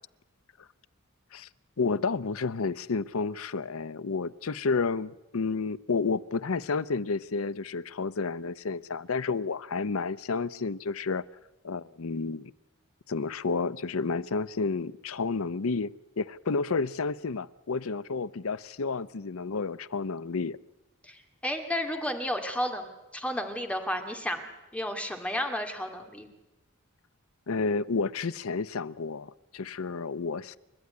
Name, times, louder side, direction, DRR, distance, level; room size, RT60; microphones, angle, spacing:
voice 1, 1.8-11.2 11.6-12.5 13.1-20.6 27.5-30.6, left 4 dB, 85° left, 16 dB, 0.7 m, -31 dB
voice 2, 21.0-24.4 24.7-26.3, left 1 dB, 5° left, 5 dB, 2.3 m, -32 dB
29.5 x 13.0 x 9.6 m, 1.0 s
head